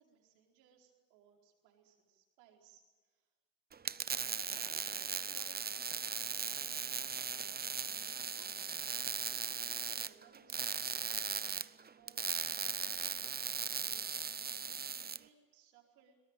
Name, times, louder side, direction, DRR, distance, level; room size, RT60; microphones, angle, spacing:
voice 1, 0.0-3.3 4.4-8.0 8.3-11.5 11.9-12.2 12.8-13.3 13.8-16.2, right 7 dB, 85° right, 1 dB, 4.8 m, -65 dB
sound 1, 3.7-15.2, right 6 dB, 20° right, 0.7 m, -38 dB
22.5 x 20.0 x 9.0 m, 1.3 s
hypercardioid pair, 70°, 48 cm